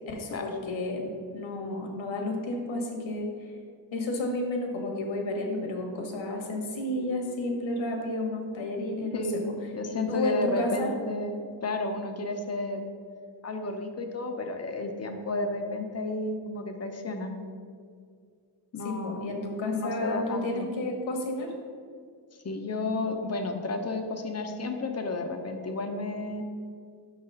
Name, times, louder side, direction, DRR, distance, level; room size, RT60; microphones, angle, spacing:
voice 1, 0.1-3.5 3.9-9.4 10.1-10.9 18.8-21.5, left 2 dB, 70° left, 1 dB, 1.4 m, -31 dB
voice 2, 9.1-12.8 13.4-17.3 18.7-19.4 19.7-20.7 22.4-26.4, left 2 dB, 30° left, 5 dB, 0.7 m, -32 dB
5.8 x 4.0 x 5.5 m, 2.1 s
cardioid pair, 85°, 48 cm